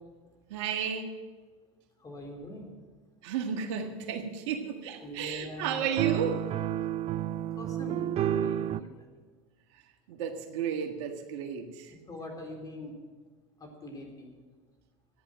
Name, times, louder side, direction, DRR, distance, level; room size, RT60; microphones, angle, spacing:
voice 1, 0.5-1.1 3.2-6.5 10.1-11.9, right 7 dB, 75° right, 1.6 m, -33 dB
voice 2, 2.0-2.7 5.0-5.9 7.5-8.9 12.1-12.9 13.6-14.3, left 1 dB, 25° left, 4.1 m, -42 dB
sound 1, 6.0-8.8, right 11 dB, 45° right, 0.6 m, -30 dB
14.0 x 10.0 x 7.4 m
hypercardioid pair, 100°, 15 cm